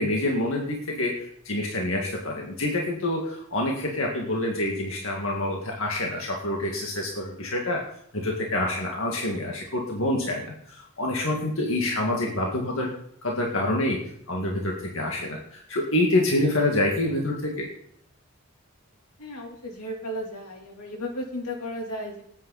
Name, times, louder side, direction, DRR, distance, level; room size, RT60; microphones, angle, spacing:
voice 1, 0.0-7.8 8.1-12.9 13.2-14.0 14.3-17.7, left 1 dB, 65° left, 0 dB, 2.0 m, -27 dB
voice 2, 19.2-22.2, equal, 90° left, 0 dB, 3.2 m, -34 dB
19.5 x 9.1 x 4.1 m, 0.68 s
head